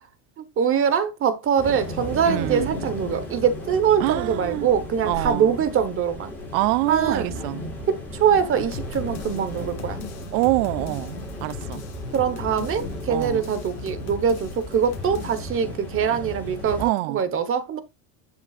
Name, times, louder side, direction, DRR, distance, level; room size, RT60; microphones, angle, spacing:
voice 1, 0.4-6.3 6.9-7.4 7.9-10.0 12.1-16.8 17.1-17.8, right 7 dB, 25° right, 1.1 m, -23 dB
sound 1, 1.6-16.9, left 1 dB, 5° left, 5.9 m, -35 dB
voice 2, 2.3-2.8 4.0-4.7 5.0-5.6 6.5-7.6 10.3-11.8 13.1-13.5 16.8-17.2, right 19 dB, 60° right, 0.6 m, -25 dB
sound 2, 8.7-15.5, left 5 dB, 35° left, 2.4 m, -38 dB
10.0 x 7.1 x 2.4 m
cardioid pair, 170°, 49 cm